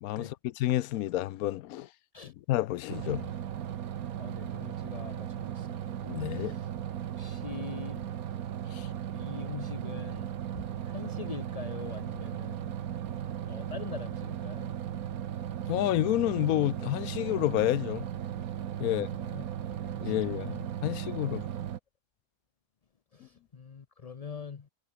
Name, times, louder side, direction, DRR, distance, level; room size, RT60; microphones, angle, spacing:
voice 1, 0.0-1.9 2.5-3.3 6.0-6.5 8.7-8.9 15.7-18.1 18.8-19.1 20.0-21.4, left 14 dB, 85° left, 1.1 m, -29 dB
sound 1, 2.9-21.8, right 10 dB, 80° right, 1.4 m, -36 dB
voice 2, 4.2-5.9 6.2-6.7 7.2-8.0 9.1-10.3 10.9-12.7 13.4-14.7 18.8-19.5 19.9-20.2 20.9-21.0 23.1-24.7, left 6 dB, 35° left, 0.6 m, -43 dB
omnidirectional pair, 1.5 m